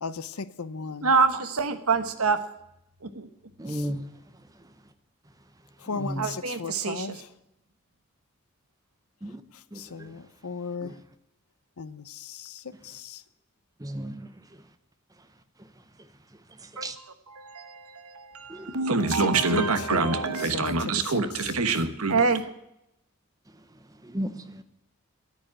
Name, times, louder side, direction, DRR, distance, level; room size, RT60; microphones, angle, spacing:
voice 1, 0.0-1.1 3.7-3.9 5.8-7.3 9.5-11.0 11.8-13.2 19.1-20.9, left 4 dB, 85° left, 14 dB, 0.7 m, -35 dB
voice 2, 1.0-2.4 3.0-3.3 6.2-7.2 16.8-16.9 17.3-22.5, right 4 dB, 85° right, 10 dB, 1.2 m, -26 dB
voice 3, 3.6-4.0 5.9-6.3 9.2-9.4 9.7-10.1 10.8-11.0 13.8-14.3 16.6-17.0 18.5-18.8 20.0-20.1 23.5-23.6 24.0-24.6, equal, 15° right, 10 dB, 0.9 m, -35 dB
10.0 x 9.4 x 8.9 m, 0.83 s
head